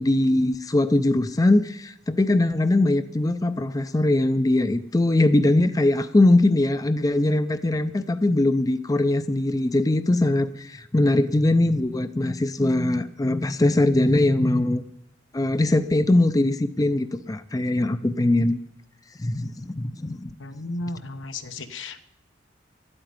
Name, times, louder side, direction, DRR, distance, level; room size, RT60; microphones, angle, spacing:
voice 1, 0.0-14.8 15.3-18.6 19.2-20.3, left 2 dB, 20° left, 11 dB, 0.5 m, -21 dB
voice 2, 20.4-22.0, left 2 dB, 85° left, 8 dB, 1.0 m, -34 dB
12.5 x 8.9 x 9.4 m, 0.82 s
head